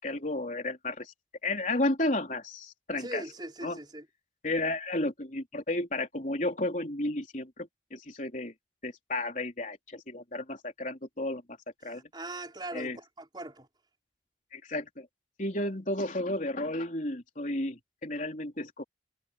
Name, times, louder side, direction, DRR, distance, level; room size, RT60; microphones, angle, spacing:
voice 1, 0.0-1.1 1.4-3.2 3.6-3.8 4.4-8.5 8.8-11.4 11.8-12.0 12.7-13.0 14.5-15.1 15.4-18.8, left 2 dB, 40° left, 3.8 m, -32 dB
voice 2, 3.0-4.0 11.8-13.7, right 1 dB, 25° right, 4.9 m, -40 dB
head